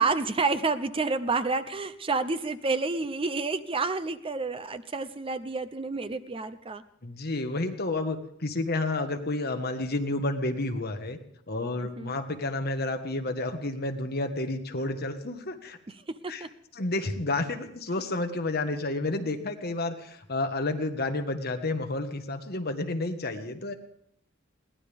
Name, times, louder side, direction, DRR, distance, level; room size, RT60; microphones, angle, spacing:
voice 1, 0.0-6.8 11.8-12.2 16.1-16.5, right 3 dB, 25° right, 13 dB, 0.6 m, -29 dB
voice 2, 7.0-11.2 11.5-15.8 16.3-16.4 16.8-23.7, left 2 dB, 50° left, 6 dB, 1.4 m, -30 dB
22.0 x 17.0 x 3.5 m, 0.73 s
head